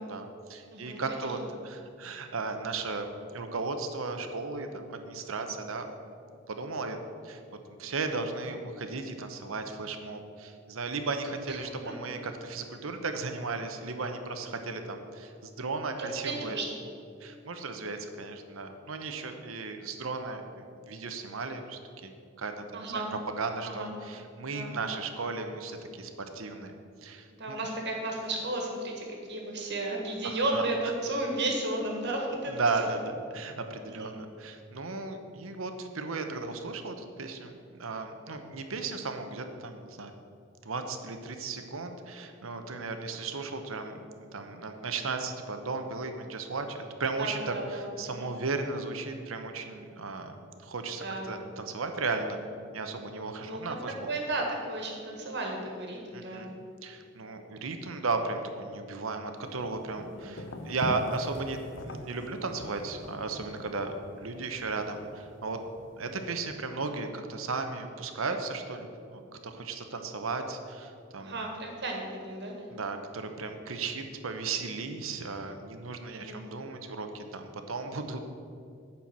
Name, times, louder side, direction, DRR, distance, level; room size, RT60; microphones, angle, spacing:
voice 1, 0.0-3.1 3.3-5.9 6.5-7.0 7.2-7.4 7.8-16.6 17.2-22.1 22.4-23.0 23.4-26.7 27.0-27.6 30.2-30.6 32.5-40.1 40.6-44.0 44.3-52.4 52.7-54.1 56.1-56.5 56.8-65.6 66.0-71.5 72.7-78.3, right 3 dB, 90° right, 6 dB, 0.8 m, -35 dB
voice 2, 0.7-1.3 11.5-11.6 11.8-11.9 16.0-16.6 22.7-23.1 23.6-23.9 24.5-24.8 27.4-32.5 33.8-34.1 47.2-48.3 51.0-51.3 53.4-56.5 60.2-60.4 71.2-72.5 76.1-76.5, right 2 dB, 60° right, 1 dB, 1.7 m, -34 dB
sound 1, 59.4-66.5, left 2 dB, 65° left, 0.7 m, -44 dB
9.5 x 4.5 x 7.4 m, 2.4 s
head